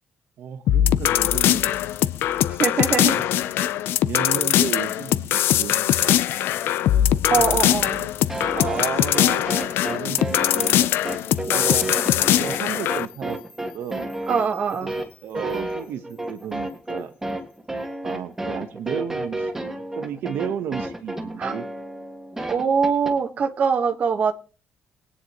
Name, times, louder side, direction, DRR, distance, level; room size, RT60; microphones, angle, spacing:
voice 1, 0.4-1.7 2.9-3.5 4.0-6.2 7.3-11.2 11.5-11.8 12.4-14.1 14.8-17.1 18.0-19.6 19.9-21.7, right 9 dB, 70° right, 1.1 m, -33 dB
sound 1, 0.7-13.1, left 12 dB, 85° left, 0.5 m, -21 dB
voice 2, 2.6-3.2 7.3-8.0 11.5-11.6 14.3-14.9 21.4-21.5 22.5-24.3, right 6 dB, 40° right, 1.3 m, -23 dB
sound 2, 8.3-23.1, right 1 dB, 10° right, 1.8 m, -31 dB
sound 3, 9.3-18.3, left 3 dB, 40° left, 3.6 m, -54 dB
22.0 x 9.7 x 3.0 m
cardioid pair, 160°, 4 cm